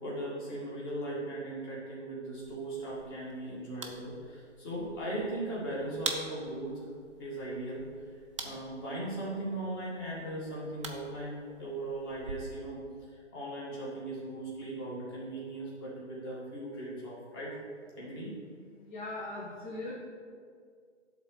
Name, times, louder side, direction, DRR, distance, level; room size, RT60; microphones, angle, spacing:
voice 1, 0.0-6.9 7.2-7.8 8.4-12.8 13.1-17.5 18.0-18.3, right 1 dB, 20° left, -6 dB, 2.1 m, -38 dB
sound 1, 2.3-12.3, right 4 dB, 25° right, 0.7 m, -45 dB
voice 2, 18.8-19.9, left 2 dB, 40° left, -4 dB, 1.6 m, -39 dB
11.5 x 4.0 x 6.6 m, 2.1 s
figure-of-eight pair, 155°, 36 cm